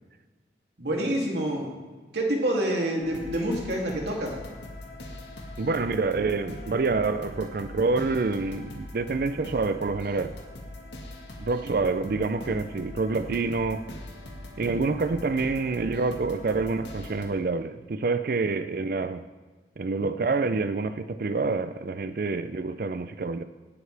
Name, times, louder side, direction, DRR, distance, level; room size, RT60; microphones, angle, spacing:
voice 1, 0.8-1.7 2.1-4.3, right 1 dB, 75° right, 2.7 m, -27 dB
sound 1, 3.0-17.3, left 1 dB, 80° left, 1.9 m, -42 dB
voice 2, 5.6-10.3 11.4-13.9 14.6-19.3 19.8-23.4, right 3 dB, 55° right, 0.4 m, -27 dB
18.5 x 9.2 x 3.4 m
head